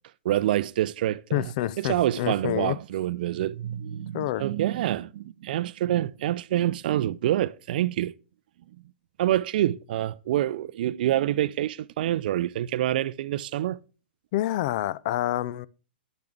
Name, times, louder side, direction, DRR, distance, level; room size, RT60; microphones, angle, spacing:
voice 1, 0.2-1.5 1.8-8.1 9.2-13.8, right 13 dB, 55° right, 0.4 m, -26 dB
voice 2, 1.3-2.8 4.1-4.4 14.3-15.7, left 14 dB, 45° left, 0.4 m, -27 dB
10.0 x 6.8 x 3.3 m
hypercardioid pair, 125°, 6 cm